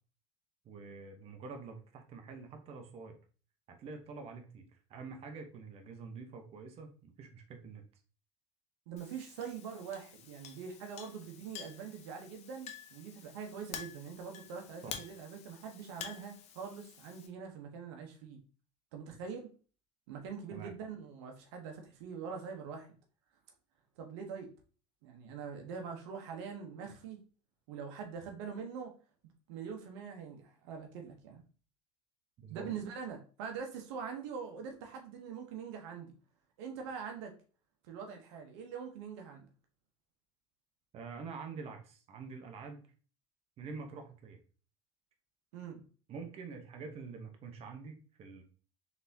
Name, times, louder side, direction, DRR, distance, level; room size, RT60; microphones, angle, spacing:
voice 1, 0.6-3.2 3.7-7.8 14.8-14.9 20.5-20.7 32.4-32.7 40.9-42.9 43.6-44.4 46.1-48.4, right 4 dB, 45° right, 4 dB, 0.9 m, -46 dB
voice 2, 8.9-18.4 18.9-19.5 20.1-22.9 24.0-24.5 25.0-27.2 27.7-28.9 29.5-31.4 32.5-36.1 36.6-37.3 37.9-39.4 45.5-45.8, right 6 dB, 80° right, 3 dB, 0.9 m, -43 dB
Chink clink, 9.0-17.3, left 8 dB, 50° left, 0.7 m, -49 dB
4.0 x 3.5 x 2.7 m, 0.38 s
supercardioid pair, 105°, 14 cm